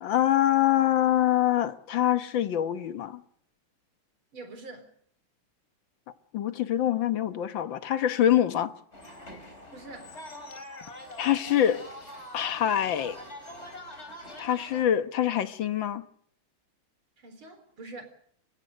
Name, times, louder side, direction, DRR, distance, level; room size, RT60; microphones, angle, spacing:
voice 1, 0.0-3.2 6.3-8.7 11.2-11.9 12.3-13.2 14.4-16.1, left 11 dB, 65° left, 1.8 m, -25 dB
voice 2, 4.3-4.9 9.7-10.1 17.2-18.0, right 2 dB, 70° right, 4.7 m, -44 dB
sound 1, 8.9-14.8, left 1 dB, 30° left, 4.4 m, -44 dB
30.0 x 16.0 x 6.6 m
omnidirectional pair, 2.4 m